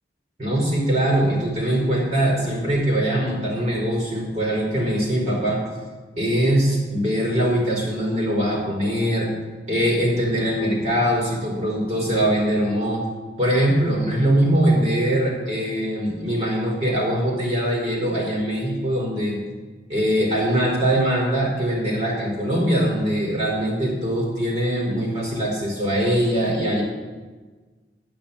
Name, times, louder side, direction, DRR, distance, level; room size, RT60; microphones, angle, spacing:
voice 1, 0.4-5.6 6.2-9.3 9.7-13.0 13.4-19.4 19.9-26.8, right 1 dB, 40° right, -3 dB, 4.3 m, -22 dB
10.5 x 9.5 x 7.0 m, 1.3 s
head